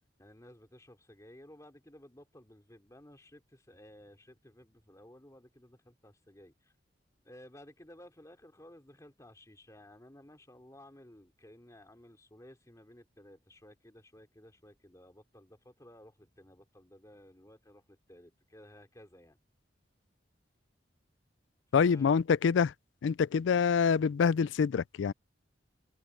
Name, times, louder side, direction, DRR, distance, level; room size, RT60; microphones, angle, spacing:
voice 1, 0.2-6.7 7.2-19.4 21.8-22.2, left 1 dB, 15° left, 3.0 m, -55 dB
voice 2, 21.7-22.7 23.0-25.1, left 6 dB, 85° left, 0.4 m, -26 dB
head